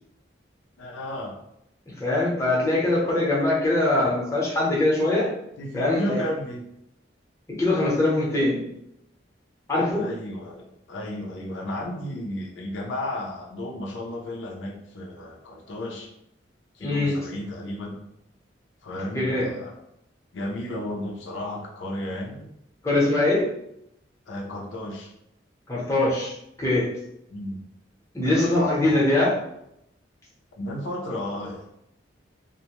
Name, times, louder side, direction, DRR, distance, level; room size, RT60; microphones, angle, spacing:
voice 1, 0.8-1.3 5.6-6.6 10.0-16.1 16.7-18.0 18.8-19.7 20.3-22.5 24.3-25.1 27.3-27.6 28.2-29.0 30.5-31.7, left 1 dB, 75° left, -1 dB, 0.5 m, -33 dB
voice 2, 2.0-5.3 5.7-6.2 7.6-8.6 9.7-10.1 16.8-17.1 19.1-19.5 22.8-23.4 25.7-26.3 26.6-26.8 28.1-29.3, left 2 dB, 15° left, -6 dB, 0.7 m, -22 dB
2.5 x 2.1 x 2.9 m, 0.79 s
head